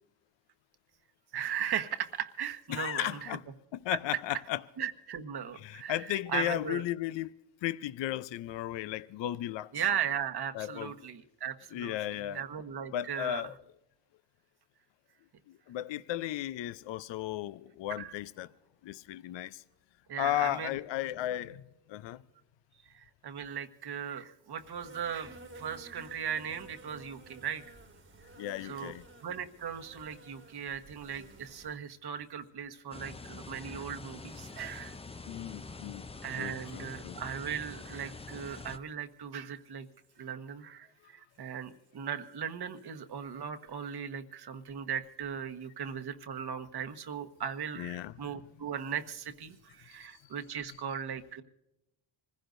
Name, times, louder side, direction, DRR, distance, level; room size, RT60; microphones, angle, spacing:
voice 1, 1.3-3.3 4.8-6.8 9.7-13.5 17.9-18.1 20.1-20.8 22.9-27.8 28.6-28.9 29.2-35.0 36.2-39.9 40.2-51.4, right 8 dB, 55° right, 1.4 m, -38 dB
voice 2, 2.7-3.4 3.7-4.6 5.6-7.3 7.6-9.7 10.5-10.9 11.7-12.4 12.9-13.5 15.5-18.5 18.8-19.6 20.2-21.6 21.9-22.2 28.4-29.0 35.3-36.1 36.4-37.2 47.8-48.1, left 13 dB, 65° left, 0.7 m, -35 dB
Insect, 24.6-31.8, right 2 dB, 25° right, 1.6 m, -53 dB
sound 1, 32.9-38.8, left 3 dB, 15° left, 0.7 m, -45 dB
26.0 x 15.5 x 2.6 m
supercardioid pair, 55°, 48 cm